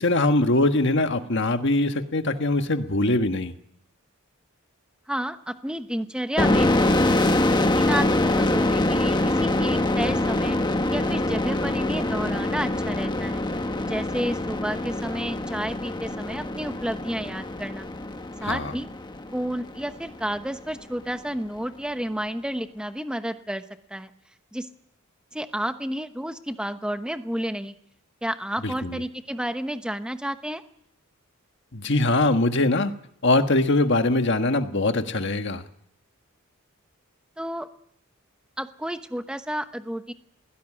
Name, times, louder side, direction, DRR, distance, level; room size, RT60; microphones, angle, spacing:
voice 1, 0.0-3.5 18.4-18.7 28.6-29.0 31.7-32.9 33.2-35.6, left 2 dB, 55° left, 7 dB, 1.6 m, -22 dB
voice 2, 5.1-6.7 7.7-10.6 10.9-13.4 13.8-17.9 18.4-18.9 19.3-23.6 23.9-24.1 24.5-24.7 25.3-27.7 28.2-30.6 37.4-37.7 38.6-40.1, equal, 5° right, 9 dB, 1.0 m, -31 dB
sound 1, 6.4-19.8, left 1 dB, 20° left, 1.2 m, -24 dB
20.5 x 16.5 x 9.9 m, 0.71 s
head